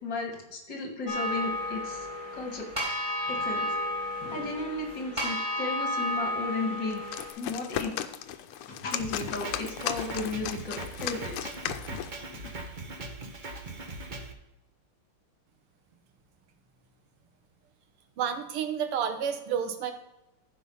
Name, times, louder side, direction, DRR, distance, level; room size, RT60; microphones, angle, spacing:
voice 1, 0.0-2.1 2.3-2.7 3.3-3.7 4.2-7.0 7.4-8.0 8.7-12.0 12.3-12.6, left 3 dB, 55° left, 2 dB, 2.3 m, -35 dB
sound 1, 1.1-7.3, left 1 dB, 15° right, 4.5 m, -32 dB
sound 2, 6.9-12.2, left 10 dB, 90° left, 1.6 m, -36 dB
Drum kit, 9.0-14.3, right 2 dB, 55° right, 0.5 m, -40 dB
voice 2, 18.2-19.9, right 8 dB, 85° right, 7 dB, 2.0 m, -30 dB
15.0 x 5.0 x 5.4 m, 0.98 s
omnidirectional pair, 2.4 m